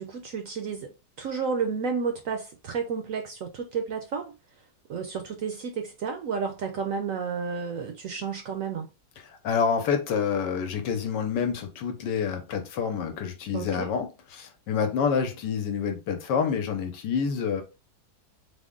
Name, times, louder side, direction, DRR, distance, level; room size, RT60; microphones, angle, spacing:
voice 1, 0.0-4.3 4.9-8.9 13.5-13.9, right 5 dB, 70° right, 0.8 m, -31 dB
voice 2, 9.4-17.6, left 6 dB, 90° left, 1.3 m, -27 dB
3.6 x 2.1 x 3.6 m
omnidirectional pair, 1.8 m